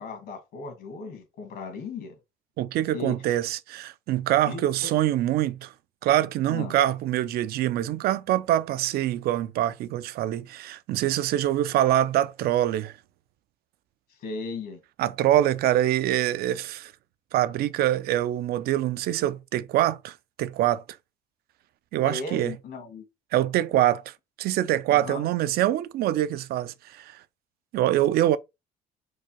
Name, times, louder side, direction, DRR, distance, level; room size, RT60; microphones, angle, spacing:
voice 1, 0.0-2.2 2.9-3.2 4.5-4.9 6.5-6.7 10.3-10.4 14.2-14.8 22.0-23.1 24.9-25.3, left 4 dB, 70° left, 1.6 m, -36 dB
voice 2, 2.6-5.7 6.0-12.9 15.0-16.9 17.3-20.8 21.9-22.5 23.3-27.2 27.7-28.4, right 13 dB, 65° right, 0.4 m, -24 dB
4.6 x 2.2 x 2.9 m
cardioid pair, 110°, 17 cm